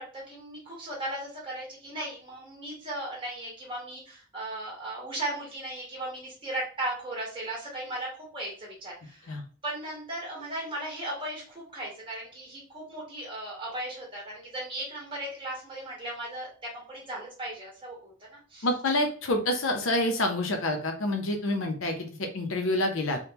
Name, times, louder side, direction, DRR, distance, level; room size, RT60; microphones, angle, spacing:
voice 1, 0.0-18.7, right 1 dB, 25° right, -5 dB, 1.4 m, -37 dB
voice 2, 18.6-23.2, left 1 dB, 65° left, 5 dB, 0.7 m, -27 dB
3.5 x 2.2 x 2.8 m, 0.42 s
head